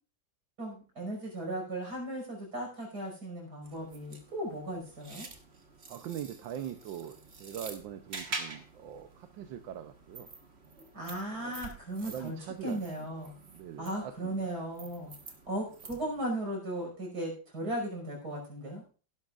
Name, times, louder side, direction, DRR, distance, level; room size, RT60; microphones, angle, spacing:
voice 1, 0.6-5.3 10.9-13.3 13.8-15.1 15.5-18.8, right 1 dB, 55° right, 0 dB, 6.1 m, -36 dB
sound 1, 3.6-16.3, right 3 dB, 35° right, 1.6 m, -47 dB
voice 2, 5.9-10.3 11.3-11.6 12.0-12.8 13.5-14.5, right 9 dB, 85° right, 7 dB, 1.5 m, -42 dB
17.0 x 11.5 x 2.5 m, 0.37 s
omnidirectional pair, 2.0 m